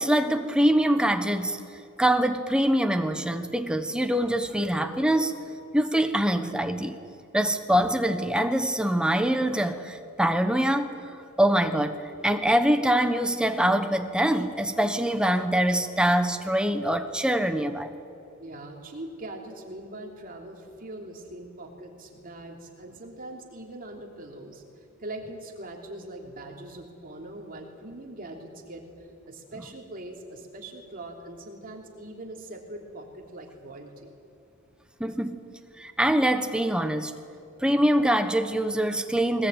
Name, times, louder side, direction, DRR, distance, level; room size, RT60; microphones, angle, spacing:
voice 1, 0.0-1.6 2.0-5.3 5.7-7.0 7.3-10.9 11.4-12.0 12.2-17.9 35.0-35.4 35.8-37.1 37.6-39.5, right 1 dB, 5° right, 8 dB, 1.1 m, -24 dB
voice 2, 18.4-24.6 25.0-28.9 29.3-34.1, right 1 dB, 40° right, 1 dB, 3.2 m, -41 dB
21.5 x 19.5 x 9.2 m, 2.8 s
head